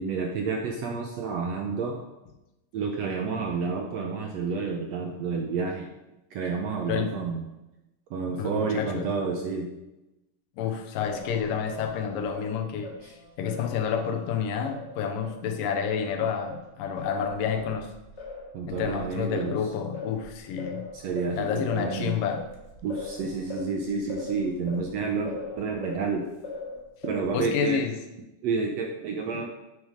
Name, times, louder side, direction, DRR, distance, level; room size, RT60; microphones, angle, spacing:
voice 1, 0.0-2.0 2.7-5.9 6.3-7.4 8.1-9.7 13.0-13.1 18.5-19.6 20.9-22.2 22.8-26.3 27.0-27.8 28.4-29.5, right 4 dB, 75° right, 2 dB, 1.6 m, -30 dB
voice 2, 8.4-9.1 10.6-17.9 18.7-20.9 21.3-22.4 27.3-28.0, left 7 dB, 85° left, 5 dB, 2.6 m, -29 dB
Singing, 11.0-15.4 15.8-26.1 26.4-27.4, left 2 dB, 45° left, 0.8 m, -41 dB
8.7 x 6.4 x 5.0 m, 0.96 s
omnidirectional pair, 3.8 m